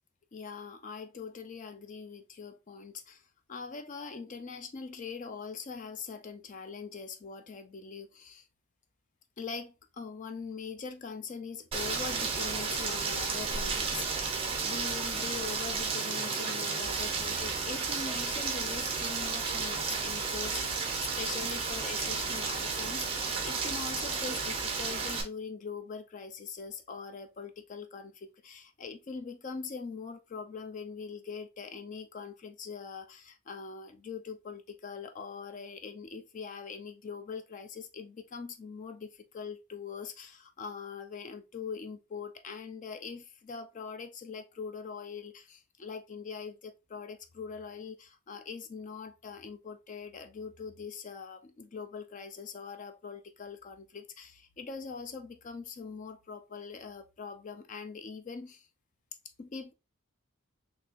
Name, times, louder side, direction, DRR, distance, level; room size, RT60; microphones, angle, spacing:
voice 1, 0.3-8.5 9.4-58.7 59.4-59.7, left 5 dB, 35° left, 0.4 m, -42 dB
Rain, 11.7-25.2, right 4 dB, 25° right, 0.5 m, -32 dB
3.8 x 2.9 x 2.5 m
head